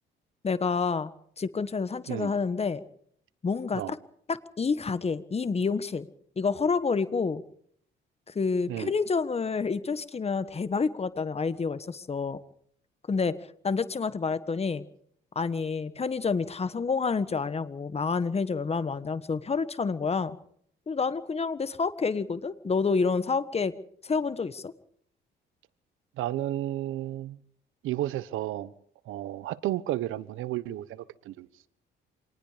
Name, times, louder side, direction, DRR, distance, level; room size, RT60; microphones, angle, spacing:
voice 1, 0.4-1.1 1.4-2.8 3.4-4.0 4.3-6.1 6.4-7.4 8.3-12.4 13.1-13.3 13.6-14.8 15.3-20.4 20.9-23.7 24.0-24.7, left 5 dB, 30° left, 1.5 m, -28 dB
voice 2, 26.2-27.4 27.8-28.7 29.1-31.5, right 14 dB, 90° right, 1.1 m, -32 dB
26.0 x 19.5 x 5.1 m
cardioid pair, 90°, 20 cm